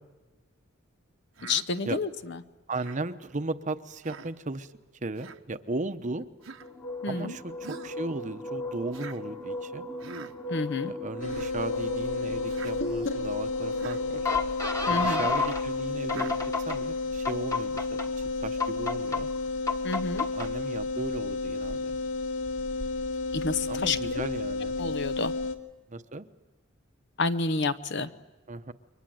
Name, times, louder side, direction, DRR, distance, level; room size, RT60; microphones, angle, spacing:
voice 1, 1.4-2.4 7.0-7.3 10.5-10.9 14.9-15.3 19.8-20.3 23.3-24.3 24.8-25.3 27.2-28.1, left 3 dB, 60° left, 12 dB, 0.9 m, -29 dB
Human voice, 1.4-1.7 2.8-3.0 4.0-4.3 5.2-5.4 6.4-6.7 7.6-8.0 8.9-9.2 10.0-10.3 11.1-11.5 12.5-12.7 13.7-14.0 15.0-15.3 16.1-16.4, right 4 dB, 75° right, 1.2 m, -43 dB
voice 2, 2.7-4.7 5.0-6.2 7.1-9.8 10.9-14.2 14.9-18.0 18.4-19.3 20.3-21.9 23.7-24.8 25.9-26.3 28.5-28.7, right 2 dB, 35° right, 10 dB, 0.9 m, -36 dB
sound 1, 6.6-15.6 16.1-16.8 17.2-18.1 18.6-19.2 19.7-20.5, left 3 dB, 15° left, 1.5 m, -33 dB
sound 2, 11.2-25.5, left 3 dB, 75° left, 1.9 m, -32 dB
29.5 x 23.5 x 7.8 m, 1.2 s
head